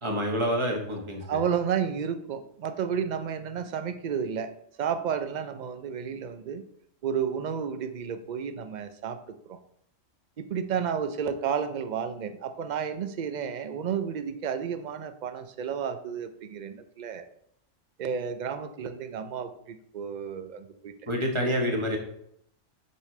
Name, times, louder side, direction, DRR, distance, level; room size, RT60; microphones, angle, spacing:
voice 1, 0.0-1.4 21.1-22.0, equal, 25° right, 1 dB, 1.3 m, -27 dB
voice 2, 1.2-4.5 4.8-6.6 7.0-9.2 9.5-9.6 10.4-17.2 18.0-20.9, right 7 dB, 50° right, 10 dB, 0.5 m, -31 dB
8.3 x 5.0 x 3.2 m, 0.72 s
omnidirectional pair, 1.3 m